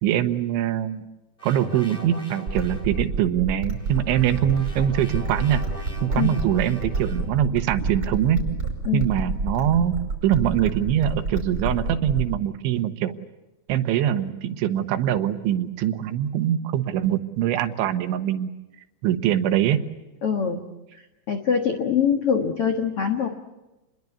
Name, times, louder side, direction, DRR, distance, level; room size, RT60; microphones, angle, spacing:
voice 1, 0.0-1.1 1.4-5.6 6.0-8.4 8.9-9.9 10.2-13.1 13.7-18.5 19.0-19.8, right 11 dB, 85° right, 9 dB, 3.6 m, -23 dB
sound 1, 1.4-3.0 3.8-7.4, equal, 10° left, 2.5 m, -41 dB
sound 2, 2.5-12.5, right 3 dB, 20° right, 5.4 m, -29 dB
voice 2, 20.2-20.6 21.3-23.3, left 7 dB, 75° left, 5 dB, 1.3 m, -23 dB
29.0 x 21.5 x 8.4 m, 1.0 s
omnidirectional pair, 5.2 m